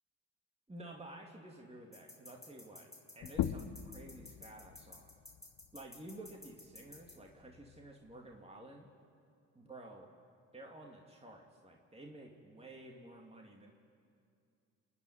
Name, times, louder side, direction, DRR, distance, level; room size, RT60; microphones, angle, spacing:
voice 1, 0.7-2.9 3.1-5.1 5.7-8.9 9.5-10.1 10.5-13.7, right 1 dB, 15° right, 0 dB, 2.7 m, -52 dB
sound 1, 1.9-7.2, left 2 dB, 10° left, 3.2 m, -54 dB
sound 2, 3.2-8.4, left 11 dB, 55° left, 0.9 m, -43 dB
28.0 x 9.8 x 9.5 m, 2.4 s
hypercardioid pair, 55°, 38 cm